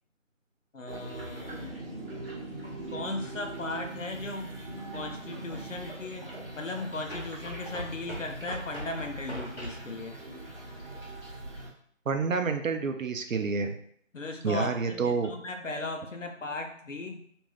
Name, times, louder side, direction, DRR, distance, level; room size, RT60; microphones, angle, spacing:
voice 1, 0.7-1.6 2.9-6.3 6.6-10.2 14.1-17.2, left 2 dB, 70° left, 4 dB, 0.6 m, -37 dB
sound 1, 0.9-11.7, right 2 dB, 45° right, 1.1 m, -41 dB
sound 2, 4.6-4.7 7.1-9.9, equal, 45° left, 1.1 m, -41 dB
voice 2, 12.1-13.7 14.4-15.3, right 4 dB, 80° right, 6 dB, 0.5 m, -28 dB
3.2 x 2.5 x 2.2 m, 0.64 s
figure-of-eight pair, 180°, 39 cm